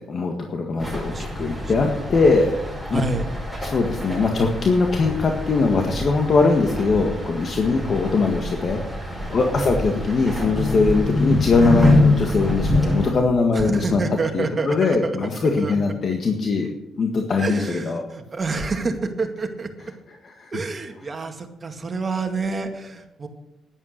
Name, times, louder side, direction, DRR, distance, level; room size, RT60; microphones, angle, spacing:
voice 1, 0.0-2.5 2.9-3.0 3.6-8.8 9.1-14.0 14.3-16.7 17.0-18.0 20.4-20.5, left 4 dB, 50° left, 2 dB, 1.6 m, -21 dB
sound 1, 0.8-13.1, left 1 dB, ahead, 5.4 m, -25 dB
voice 2, 0.8-1.7 2.9-3.3 9.6-9.8 13.5-15.1 15.6-15.8 17.4-19.9 20.5-23.3, right 3 dB, 35° right, 5 dB, 2.0 m, -28 dB
11.0 x 11.0 x 6.6 m, 0.92 s
cardioid pair, 90°, 0 cm